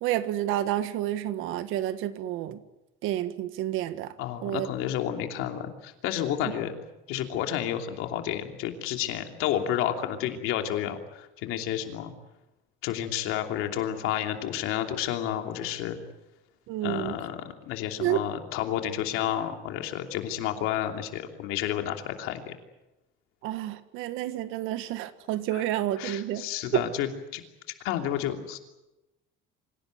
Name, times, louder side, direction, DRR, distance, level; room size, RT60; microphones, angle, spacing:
voice 1, 0.0-2.6 3.0-4.1 4.4-4.7 16.7-17.2 18.0-18.2 23.4-26.4 26.7-26.9, right 13 dB, 80° right, 12 dB, 1.6 m, -29 dB
voice 2, 4.2-6.8 7.1-12.1 12.8-16.0 16.8-22.5 25.5-25.6 26.0-27.4 27.8-28.6, left 11 dB, 90° left, 5 dB, 2.9 m, -31 dB
26.0 x 17.0 x 9.2 m, 0.99 s
cardioid pair, 155°, 21 cm